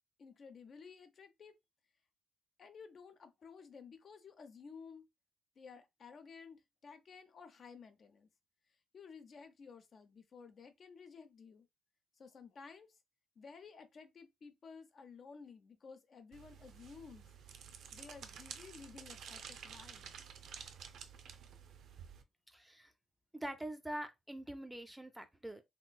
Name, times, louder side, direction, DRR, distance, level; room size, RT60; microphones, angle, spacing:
voice 1, 0.2-1.5 2.6-5.1 5.6-8.3 8.9-11.7 12.2-13.0 13.4-17.3 17.9-20.1, left 5 dB, 45° left, 0.6 m, -54 dB
sound 1, 16.3-22.2, right 7 dB, 75° right, 0.5 m, -51 dB
voice 2, 22.5-22.9 23.3-25.6, right 1 dB, 5° right, 0.4 m, -44 dB
3.3 x 2.9 x 2.2 m
cardioid pair, 130°, 0 cm